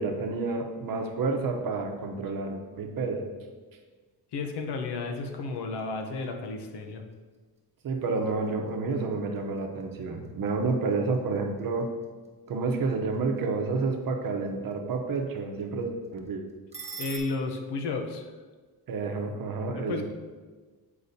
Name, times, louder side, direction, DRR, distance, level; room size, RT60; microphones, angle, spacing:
voice 1, 0.0-3.3 7.8-11.9 12.5-16.4 18.9-20.0, right 4 dB, 55° right, 3 dB, 0.9 m, -30 dB
voice 2, 4.3-7.0 17.0-18.3 19.8-20.0, left 3 dB, 75° left, 5 dB, 0.8 m, -32 dB
sound 1, 5.4-17.2, right 5 dB, 15° right, 1.1 m, -51 dB
8.1 x 4.8 x 2.7 m, 1.4 s
cardioid pair, 120°, 40 cm